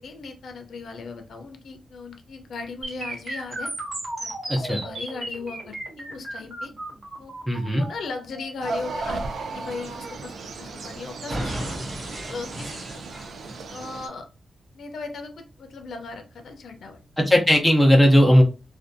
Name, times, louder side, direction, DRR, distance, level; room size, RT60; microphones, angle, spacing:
voice 1, 0.0-3.7 4.2-6.7 7.2-7.4 7.7-11.9 12.2-13.0 13.7-14.3 14.7-17.0, left 4 dB, 75° left, 6 dB, 0.5 m, -37 dB
sound 1, 2.8-10.8 11.3-13.8, right 1 dB, 50° right, 0.9 m, -35 dB
voice 2, 4.5-4.8 7.5-7.8 17.2-18.4, equal, 5° left, 0 dB, 0.5 m, -17 dB
sound 2, 8.6-14.1, right 3 dB, 75° right, 0.4 m, -35 dB
2.5 x 2.2 x 2.5 m, 0.31 s
wide cardioid pair, 170°, 0 cm